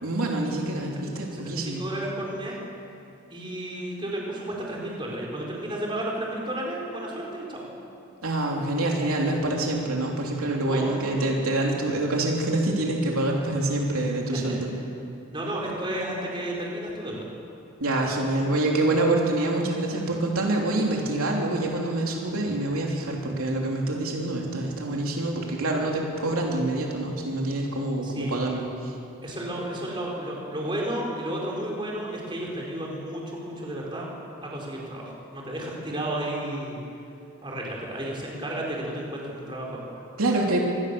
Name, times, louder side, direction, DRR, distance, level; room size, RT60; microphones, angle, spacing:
voice 1, 0.0-1.8 8.2-14.7 17.8-28.9 40.2-40.6, right 2 dB, 80° right, -1 dB, 3.3 m, -26 dB
voice 2, 1.3-2.6 3.3-7.6 10.7-11.3 11.7-11.8 15.3-17.3 28.0-28.3 29.2-34.1 34.4-36.8 37.4-40.0, right 1 dB, 20° right, -2 dB, 4.4 m, -32 dB
25.5 x 19.5 x 6.9 m, 2.6 s
head